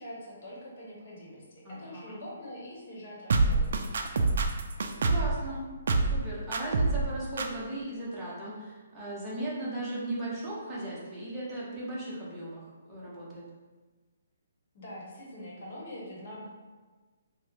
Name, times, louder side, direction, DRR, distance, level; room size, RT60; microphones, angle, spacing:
voice 1, 0.0-3.8 14.7-16.5, left 1 dB, 45° left, -5 dB, 1.1 m, -44 dB
voice 2, 1.6-2.2 5.0-5.7 6.0-13.4, right 1 dB, 10° right, -9 dB, 0.8 m, -37 dB
sound 1, 3.3-5.4 5.9-6.2 6.5-7.1 7.4-7.5, right 3 dB, 60° right, 0.3 m, -25 dB
3.5 x 2.1 x 3.1 m, 1.3 s
hypercardioid pair, 165°, 0 cm